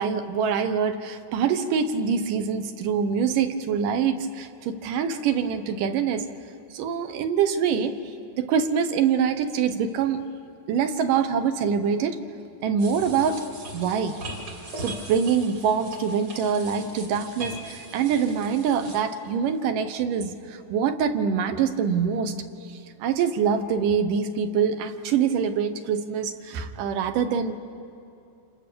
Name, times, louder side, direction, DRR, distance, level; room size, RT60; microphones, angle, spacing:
voice 1, 0.0-6.3 6.7-7.9 8.4-10.2 10.7-12.2 12.6-13.5 13.7-14.2 14.8-22.4 22.7-27.5, right 7 dB, 70° right, 9 dB, 2.5 m, -25 dB
sound 1, 12.8-19.0, right 1 dB, 40° right, 3.7 m, -39 dB
29.0 x 28.0 x 6.9 m, 2.6 s
omnidirectional pair, 4.1 m